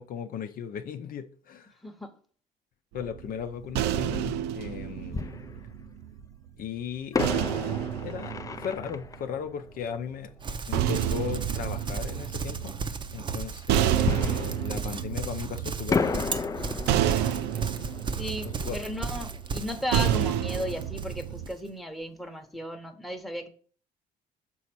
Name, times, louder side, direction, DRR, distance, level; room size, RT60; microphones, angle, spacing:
voice 1, 0.0-1.7 2.9-5.2 6.6-7.2 8.0-10.3 10.7-12.7 13.1-16.3 18.4-18.8, left 7 dB, 60° left, 0.7 m, -37 dB
sound 1, 3.0-6.3 7.2-9.5 10.4-21.5, right 11 dB, 90° right, 0.4 m, -30 dB
Fireworks, 5.1-6.2 7.1-10.6 14.0-15.5 15.9-20.4 20.7-20.8 21.3-21.5, left 4 dB, 20° left, 0.4 m, -34 dB
Livestock farm animals working animals, 10.4-21.6, right 4 dB, 30° right, 0.6 m, -35 dB
voice 2, 18.2-23.5, equal, ahead, 0.9 m, -35 dB
6.2 x 4.2 x 6.1 m
cardioid pair, 110°, 17 cm